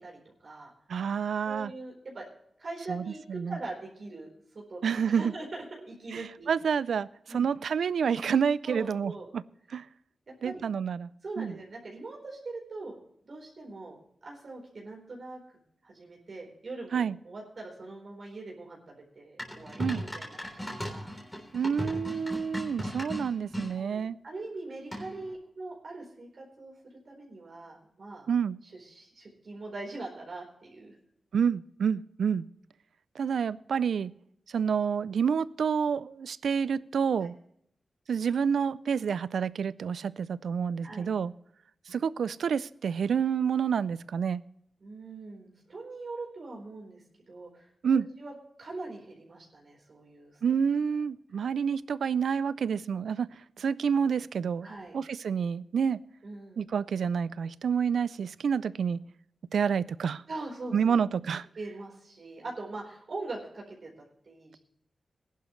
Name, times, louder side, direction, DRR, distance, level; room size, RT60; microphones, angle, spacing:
voice 1, 0.0-0.7 1.4-2.3 2.6-6.5 7.3-7.4 8.6-9.3 10.4-10.6 11.2-13.0 13.2-15.4 15.8-21.2 22.8-22.9 23.7-28.3 28.7-30.9 40.8-41.1 44.8-47.7 48.2-48.3 48.6-50.4 54.6-55.0 56.2-56.6 60.3-61.0 61.6-64.6, right 2 dB, 50° right, -1 dB, 4.2 m, -42 dB
voice 2, 0.9-1.7 2.9-3.0 3.3-3.6 4.8-5.3 6.1-9.4 9.7-9.9 10.4-11.1 11.4-11.5 16.9-17.2 19.8-20.0 21.5-24.2 28.3-28.6 31.3-32.5 33.2-34.1 34.5-37.3 38.1-41.3 41.9-44.4 47.8-48.1 50.4-53.3 53.6-54.7 54.9-56.0 56.6-59.0 59.5-60.2 60.7-61.5, right 7 dB, 85° right, 19 dB, 0.4 m, -28 dB
sound 1, 19.4-23.7 24.9-25.3, equal, 10° left, 3.4 m, -37 dB
20.0 x 11.0 x 3.2 m, 0.71 s
wide cardioid pair, 120°, 0 cm